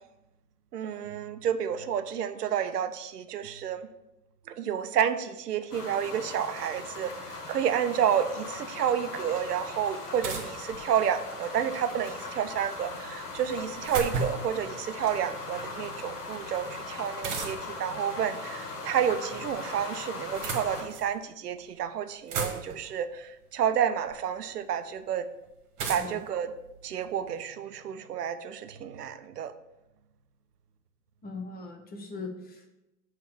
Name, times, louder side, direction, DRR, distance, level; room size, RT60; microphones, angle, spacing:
voice 1, 0.7-3.9 4.5-25.3 25.9-26.5 26.8-29.5, right 9 dB, 85° right, 11 dB, 0.6 m, -30 dB
sound 1, 5.7-20.8, left 3 dB, 80° left, 1.6 m, -39 dB
sound 2, 10.2-11.3 13.3-14.6 17.2-17.8 19.0-19.6 20.1-21.1 21.8-21.9 22.0-22.9 24.1-24.2 25.8-27.3, right 4 dB, 40° right, 1.4 m, -35 dB
voice 2, 31.2-32.7, left 3 dB, 20° left, 4 dB, 1.0 m, -40 dB
7.1 x 3.2 x 5.9 m, 0.94 s
figure-of-eight pair, 90°, 46 cm